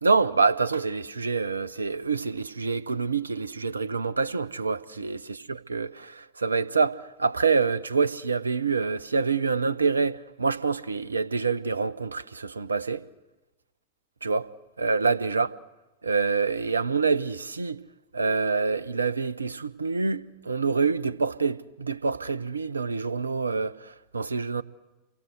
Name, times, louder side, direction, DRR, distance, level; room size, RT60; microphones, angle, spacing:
voice 1, 0.0-5.2 5.7-13.1 14.2-14.5 14.8-15.5 16.0-17.8 18.1-24.6, right 4 dB, 75° right, 0.8 m, -26 dB
29.0 x 24.0 x 7.8 m
figure-of-eight pair, 90°, 0 cm